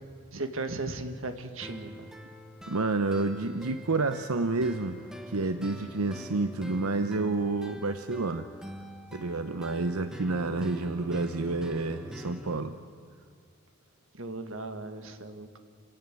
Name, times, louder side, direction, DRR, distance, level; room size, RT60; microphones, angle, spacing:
voice 1, 0.3-2.1 14.1-15.5, right 2 dB, 65° right, 7 dB, 1.9 m, -36 dB
sound 1, 1.6-12.6, equal, 5° right, 1.3 m, -44 dB
voice 2, 2.7-5.0 5.3-8.5 9.1-12.7, right 3 dB, 85° right, 9 dB, 0.9 m, -29 dB
28.5 x 16.5 x 9.2 m, 2.4 s
head